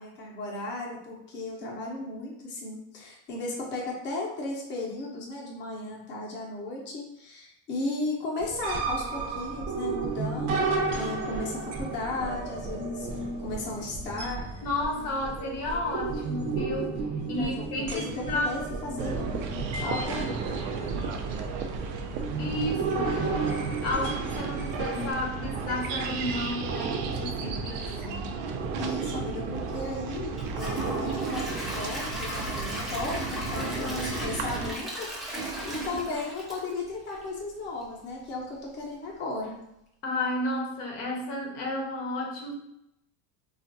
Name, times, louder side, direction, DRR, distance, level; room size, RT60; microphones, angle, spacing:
voice 1, 0.0-13.1 13.4-14.4 17.4-20.2 28.8-39.6, left 2 dB, 30° left, -3 dB, 0.7 m, -35 dB
sound 1, 8.4-25.1, right 4 dB, 45° right, 0.6 m, -33 dB
voice 2, 14.6-17.0 17.3-18.5 20.1-20.3 20.6-20.7 22.4-28.3 33.5-34.3 40.0-42.5, left 2 dB, 65° left, 0 dB, 0.8 m, -32 dB
sound 2, 19.0-34.7, right 5 dB, 85° right, 0.6 m, -34 dB
Gurgling / Toilet flush / Trickle dribble, 30.3-37.4 37.8-37.9 38.4-38.5, right 1 dB, ahead, 0.4 m, -36 dB
3.5 x 2.4 x 2.6 m, 0.80 s
cardioid pair, 155°, 36 cm